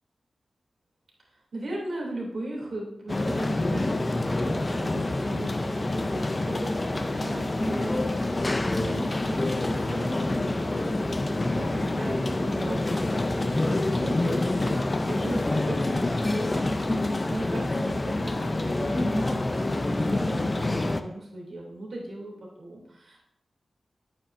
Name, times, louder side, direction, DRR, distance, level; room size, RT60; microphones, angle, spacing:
voice 1, 1.3-23.3, right 1 dB, 65° right, -3 dB, 3.0 m, -38 dB
sound 1, 3.1-21.0, left 2 dB, 25° left, 0.5 m, -27 dB
10.0 x 8.8 x 2.7 m, 0.82 s
wide cardioid pair, 145°, 0 cm